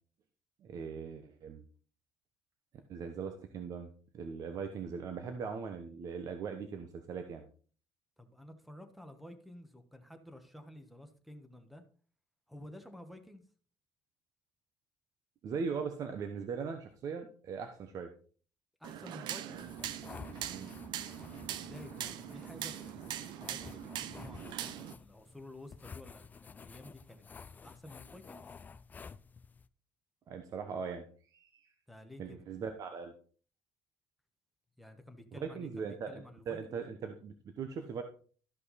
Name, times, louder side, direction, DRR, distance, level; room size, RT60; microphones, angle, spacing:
voice 1, 0.6-1.6 2.9-3.9 4.1-7.4 15.4-18.1 20.5-20.7 30.3-31.0 31.3-31.7 32.2-33.1 35.4-38.0, right 6 dB, 45° right, 1.0 m, -40 dB
voice 2, 8.2-11.8 12.5-13.4 18.8-19.7 21.4-27.3 27.6-28.4 31.9-32.4 34.8-36.8, left 1 dB, ahead, 1.2 m, -52 dB
sound 1, 18.8-24.9, right 11 dB, 65° right, 0.7 m, -42 dB
sound 2, 19.5-29.7, left 5 dB, 20° left, 0.4 m, -51 dB
13.0 x 5.5 x 4.1 m
cardioid pair, 140°, 8 cm